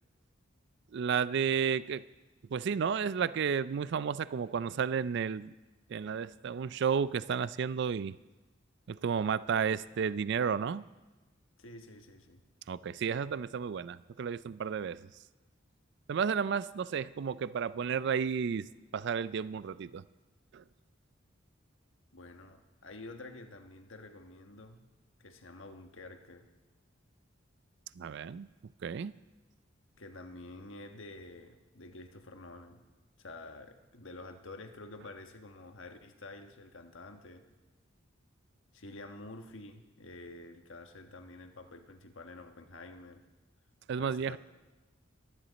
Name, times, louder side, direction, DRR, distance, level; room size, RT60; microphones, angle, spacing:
voice 1, 0.9-2.0 2.5-5.5 5.9-8.2 8.9-10.8 12.7-15.1 16.1-20.0 20.5-20.6 28.0-28.5 28.8-29.1 43.9-44.4, right 6 dB, 60° right, 17 dB, 0.4 m, -32 dB
voice 2, 11.6-12.4 22.1-24.8 25.2-26.5 30.0-32.8 33.2-37.4 38.7-43.2 44.0-44.4, left 2 dB, 80° left, 6 dB, 1.3 m, -49 dB
23.0 x 10.5 x 4.1 m, 1.2 s
head